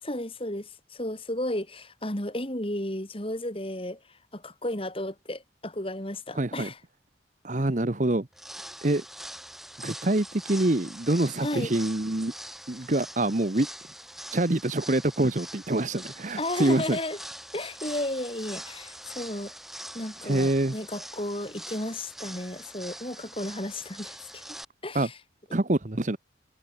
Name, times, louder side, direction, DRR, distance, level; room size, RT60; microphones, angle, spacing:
voice 1, 0.0-4.0 4.3-6.8 11.4-11.7 16.4-17.2 17.5-19.5 19.9-24.4 24.8-25.2, left 1 dB, 30° left, 3.6 m, -33 dB
voice 2, 6.4-6.7 7.4-8.3 8.8-9.0 9.8-12.3 12.7-13.7 14.3-17.0 20.2-20.7 24.9-25.1 25.5-26.2, right 1 dB, 45° right, 1.1 m, -25 dB
sound 1, 8.3-24.6, equal, ahead, 4.0 m, -43 dB
head